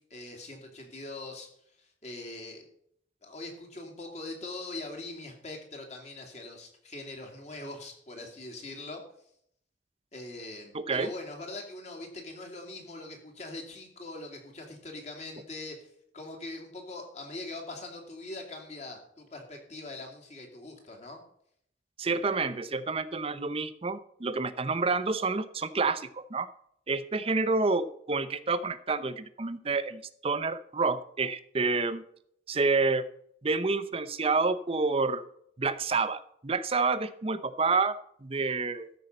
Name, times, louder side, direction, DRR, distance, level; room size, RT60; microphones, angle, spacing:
voice 1, 0.0-1.5 1.8-2.6 3.2-9.0 10.1-21.2, left 2 dB, 40° left, 2 dB, 2.5 m, -42 dB
voice 2, 10.7-11.1 22.0-26.5 26.9-32.0 32.5-33.1 33.4-35.3 35.6-38.9, right 4 dB, 30° right, 13 dB, 0.6 m, -29 dB
13.5 x 5.5 x 7.7 m, 0.68 s
head